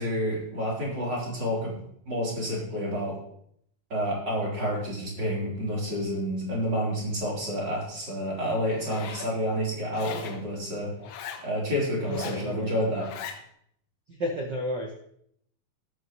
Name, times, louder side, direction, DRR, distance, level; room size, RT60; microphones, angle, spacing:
voice 1, 0.0-1.8 2.1-3.2 3.9-10.9 11.4-13.1, equal, 25° right, -5 dB, 4.4 m, -29 dB
Zipper (clothing), 8.7-9.3 9.9-10.4 11.0-11.4 12.0-12.5 12.9-13.4, left 7 dB, 75° left, 2.8 m, -38 dB
voice 2, 12.0-12.7 14.1-14.9, equal, 70° right, 0 dB, 1.0 m, -32 dB
13.0 x 12.0 x 3.2 m, 0.70 s
omnidirectional pair, 4.4 m